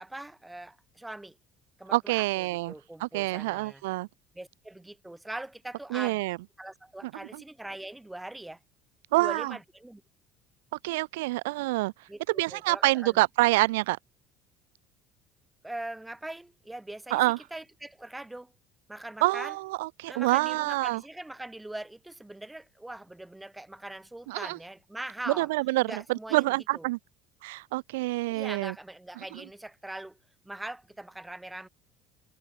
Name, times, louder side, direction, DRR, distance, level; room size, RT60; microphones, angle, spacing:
voice 1, 0.0-1.4 1.8-3.8 4.3-6.2 6.6-8.6 9.2-10.0 12.1-13.2 15.6-17.2 17.5-18.5 18.9-19.6 20.1-25.5 25.8-26.8 28.3-30.2 30.4-31.7, right 1 dB, 10° right, 2.9 m, -41 dB
voice 2, 1.9-2.7 3.0-4.1 5.9-6.4 7.3-7.4 9.1-9.5 10.8-11.9 12.3-14.0 17.1-17.4 19.2-21.0 24.3-24.6 25.4-27.0 27.4-28.7 29.3-29.4, right 21 dB, 80° right, 0.6 m, -27 dB
hypercardioid pair, 80°, 0 cm